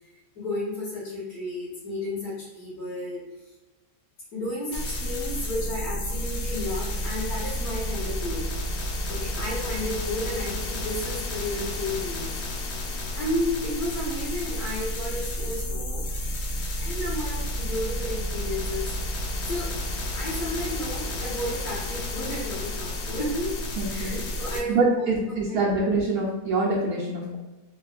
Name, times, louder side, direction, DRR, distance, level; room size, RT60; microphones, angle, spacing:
voice 1, 0.3-3.2 4.3-8.5 9.1-12.4 12.9-16.0 16.8-18.9 19.4-19.7 20.1-23.6 23.9-25.0 25.5-25.6, left 1 dB, 85° left, -11 dB, 1.7 m, -32 dB
sound 1, 4.7-24.6, left 1 dB, 65° left, 0.6 m, -31 dB
voice 2, 23.8-24.2 24.5-27.4, right 3 dB, 75° right, -6 dB, 1.1 m, -25 dB
3.5 x 3.0 x 2.4 m, 1.1 s
omnidirectional pair, 1.6 m